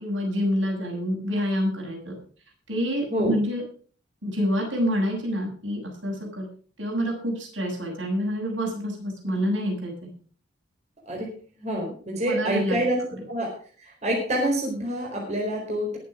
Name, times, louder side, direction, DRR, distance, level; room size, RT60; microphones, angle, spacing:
voice 1, 0.0-2.1 2.7-3.6 4.2-6.5 6.8-10.1 12.2-12.8, equal, 75° right, 0 dB, 7.2 m, -27 dB
voice 2, 11.6-13.0 13.3-13.5 13.8-16.0, right 1 dB, 35° right, -1 dB, 4.3 m, -27 dB
21.5 x 7.6 x 5.1 m, 0.43 s
head